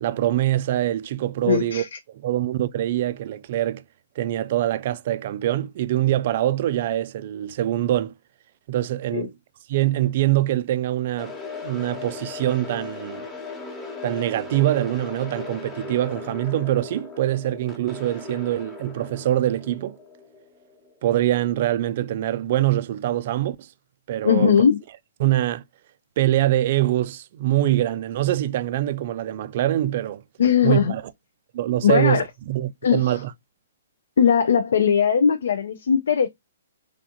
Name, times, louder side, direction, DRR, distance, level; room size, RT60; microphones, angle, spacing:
voice 1, 0.0-1.8 2.1-3.8 4.2-8.1 8.7-9.3 9.7-11.3 11.6-13.2 14.0-20.0 21.0-23.7 24.1-24.6 25.2-25.6 26.2-30.2 30.6-31.0 31.5-33.3, right 13 dB, 40° right, 0.3 m, -24 dB
voice 2, 1.4-2.0 9.1-9.3 24.2-24.8 30.4-30.9 31.8-32.2 32.8-33.2 34.2-36.3, left 7 dB, 55° left, 0.4 m, -19 dB
sound 1, 11.2-21.2, left 4 dB, 10° left, 1.0 m, -38 dB
3.5 x 3.3 x 2.6 m
figure-of-eight pair, 120°, 0 cm